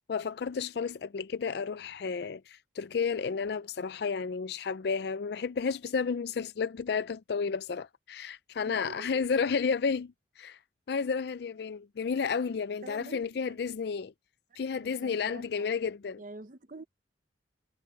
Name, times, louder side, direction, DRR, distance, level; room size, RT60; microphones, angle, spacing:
voice 1, 0.1-10.6 10.9-14.1 14.6-16.2, left 5 dB, 60° left, 0.4 m, -32 dB
voice 2, 8.6-9.3 12.8-13.6 14.5-15.7 16.2-16.8, right 2 dB, 45° right, 0.7 m, -47 dB
head